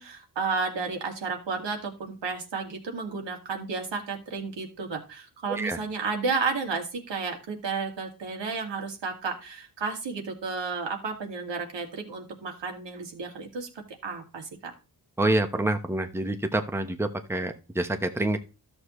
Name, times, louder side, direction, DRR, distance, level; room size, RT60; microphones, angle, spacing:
voice 1, 0.0-13.7 14.0-14.7, right 4 dB, 85° right, 2 dB, 2.4 m, -32 dB
voice 2, 15.2-18.4, right 2 dB, 5° right, 7 dB, 1.0 m, -27 dB
13.0 x 6.6 x 3.2 m, 0.31 s
cardioid pair, 75°, 42 cm